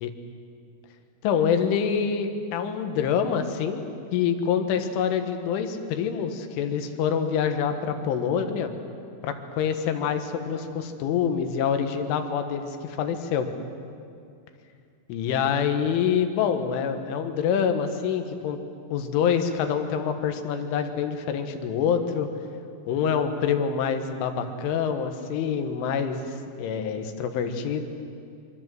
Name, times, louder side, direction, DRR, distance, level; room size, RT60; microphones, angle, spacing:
voice 1, 1.2-3.8 4.1-8.7 9.2-13.5 15.1-18.6 18.9-22.3 22.9-27.8, left 7 dB, 75° left, 7 dB, 4.0 m, -26 dB
26.5 x 24.5 x 7.7 m, 2.4 s
omnidirectional pair, 5.7 m